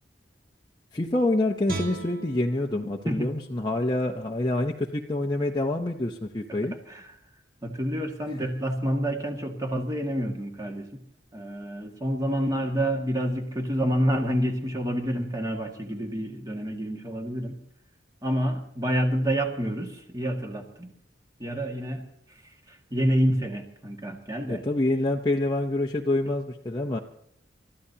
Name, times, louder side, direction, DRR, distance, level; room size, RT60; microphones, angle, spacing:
voice 1, 0.9-6.7 24.5-27.0, left 2 dB, 25° left, 0 dB, 0.7 m, -26 dB
Guitar, 1.7-4.8 5.2-5.4, right 2 dB, 50° right, 1.8 m, -40 dB
voice 2, 3.0-3.4 6.9-7.1 7.6-10.9 11.3-17.6 18.2-20.9 21.4-22.0 22.7-24.6, equal, 20° right, 2 dB, 1.9 m, -28 dB
30.0 x 13.5 x 2.9 m, 0.71 s
head